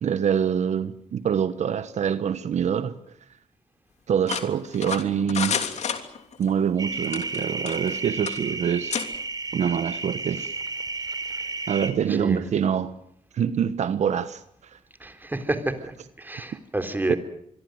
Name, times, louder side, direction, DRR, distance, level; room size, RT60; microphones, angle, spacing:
voice 1, 0.0-2.9 4.1-5.6 6.4-9.0 9.5-10.5 11.7-12.9 13.3-14.4 17.1-17.2, right 8 dB, 70° right, 1.2 m, -25 dB
sound 1, 4.3-6.5 7.0-8.0 8.3-8.4 8.9-9.1, left 7 dB, 70° left, 3.1 m, -30 dB
sound 2, 6.8-11.9, right 4 dB, 35° right, 3.9 m, -32 dB
voice 2, 12.1-12.4 15.0-15.9 16.2-17.2, right 2 dB, 15° right, 3.8 m, -29 dB
26.0 x 23.0 x 7.9 m
cardioid pair, 100°, 12 cm